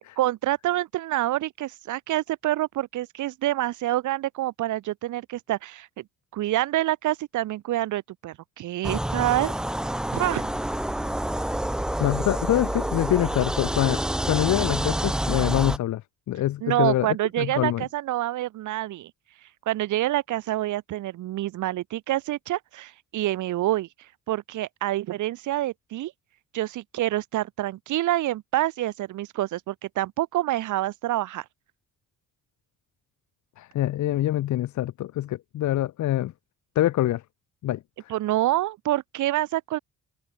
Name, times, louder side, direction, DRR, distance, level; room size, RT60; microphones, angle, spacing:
voice 1, 0.2-6.0 6.3-9.5 10.1-10.5 16.6-19.1 19.7-23.9 24.3-26.1 26.5-31.4 38.1-39.8, right 15 dB, 75° right, 1.1 m, -27 dB
sound 1, 8.8-15.8, right 1 dB, ahead, 0.4 m, -28 dB
voice 2, 12.0-14.0 14.3-16.0 16.3-17.1 17.4-17.8 33.6-36.3 36.7-37.2 37.6-37.8, left 14 dB, 70° left, 1.0 m, -25 dB
cardioid pair, 90°, 30 cm